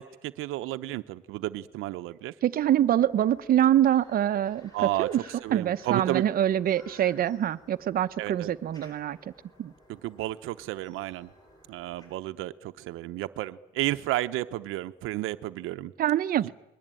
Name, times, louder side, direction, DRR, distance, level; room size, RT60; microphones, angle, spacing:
voice 1, 0.0-2.3 4.7-5.1 5.4-6.3 8.2-8.5 9.9-11.3 11.7-15.9, right 16 dB, 85° right, 10 dB, 0.9 m, -32 dB
voice 2, 2.4-5.2 5.5-9.2 9.6-9.7 16.0-16.5, right 11 dB, 45° right, 12 dB, 0.9 m, -25 dB
sound 1, 2.6-12.2, equal, 20° left, 7.4 m, -56 dB
30.0 x 21.5 x 9.1 m, 0.98 s
cardioid pair, 165°, 21 cm